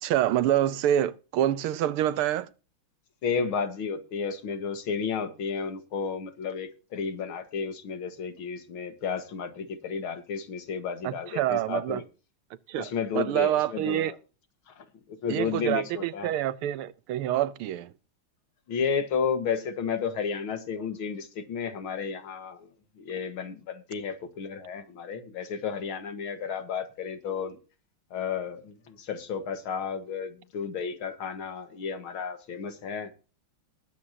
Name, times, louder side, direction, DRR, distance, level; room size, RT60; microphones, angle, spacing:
voice 1, 0.0-2.5 11.0-12.0 12.7-14.1 15.3-17.9, right 12 dB, 85° right, 1.6 m, -27 dB
voice 2, 3.2-12.0 12.8-14.2 14.8-14.9 15.2-16.3 18.7-22.7 23.0-27.6 28.1-33.1, left 6 dB, 70° left, 2.4 m, -32 dB
20.5 x 8.6 x 2.8 m
omnidirectional pair, 2.4 m